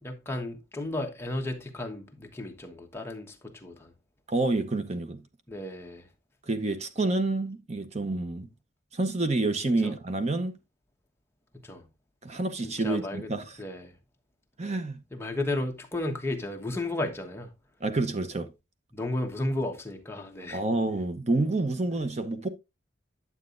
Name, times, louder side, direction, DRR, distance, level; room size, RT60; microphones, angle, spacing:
voice 1, 0.0-3.9 5.5-6.1 9.6-9.9 11.6-11.8 12.6-13.3 13.6-13.9 15.1-17.5 18.9-20.6 21.9-22.0, left 2 dB, 15° left, 1.2 m, -34 dB
voice 2, 4.3-5.2 6.5-8.5 8.9-10.6 12.2-13.6 14.6-15.0 17.8-18.5 20.5-22.5, right 2 dB, 35° right, 0.8 m, -28 dB
9.7 x 8.0 x 2.5 m
head